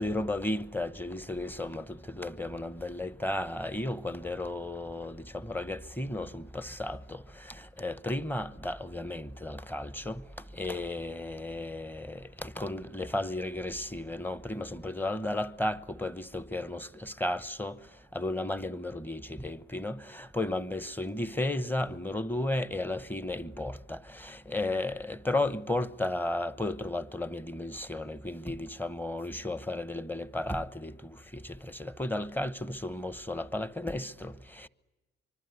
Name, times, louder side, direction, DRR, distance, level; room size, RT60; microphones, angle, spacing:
voice 1, 0.0-7.2 7.5-10.2 10.5-17.7 18.1-31.0 31.3-34.7, left 1 dB, 5° left, 1.0 m, -34 dB
24.5 x 24.5 x 9.7 m
cardioid pair, 90°, 30 cm